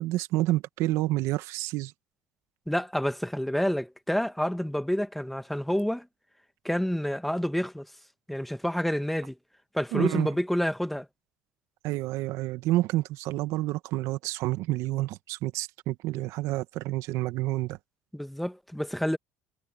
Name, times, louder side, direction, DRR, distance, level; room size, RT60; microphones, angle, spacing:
voice 1, 0.0-1.9 9.9-10.3 11.8-17.8, right 17 dB, 70° right, 1.5 m, -29 dB
voice 2, 2.7-6.1 6.6-7.9 8.3-9.3 9.7-11.1 18.1-19.2, equal, ahead, 1.3 m, -28 dB
supercardioid pair, 85°, 5 cm